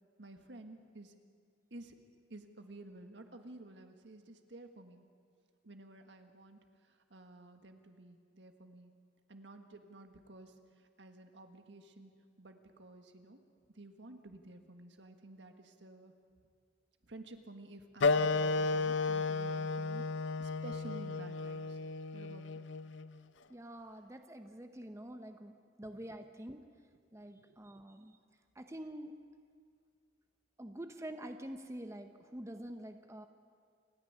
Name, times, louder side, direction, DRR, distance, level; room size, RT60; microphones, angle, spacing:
voice 1, 0.2-1.1 1.7-2.0 2.3-5.1 5.6-8.9 9.3-12.1 12.4-13.4 13.7-16.1 17.0-20.0 20.4-21.8 22.1-22.6 27.4-27.6, right 2 dB, 70° right, 6 dB, 1.7 m, -52 dB
Wind instrument woodwind instrument, 18.0-23.1, left 3 dB, 90° left, 0.6 m, -33 dB
voice 2, 23.5-25.5 25.8-26.6 27.1-28.2 28.5-29.1 30.6-33.3, right 1 dB, 15° right, 7 dB, 0.8 m, -46 dB
28.0 x 10.0 x 9.5 m, 2.1 s
head